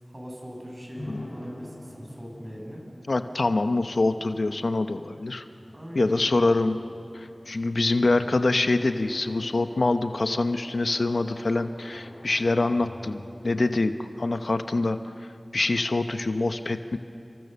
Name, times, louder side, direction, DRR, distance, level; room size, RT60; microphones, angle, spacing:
voice 1, 0.1-2.8 5.7-6.2, equal, 30° right, -1 dB, 7.3 m, -41 dB
sound 1, 0.9-14.7, left 1 dB, 45° left, 5.1 m, -47 dB
voice 2, 3.1-5.4 5.9-6.8 7.1-15.0 15.5-17.0, left 2 dB, 85° left, 9 dB, 0.9 m, -25 dB
30.0 x 24.5 x 6.9 m, 2.7 s
wide cardioid pair, 55°, 0 cm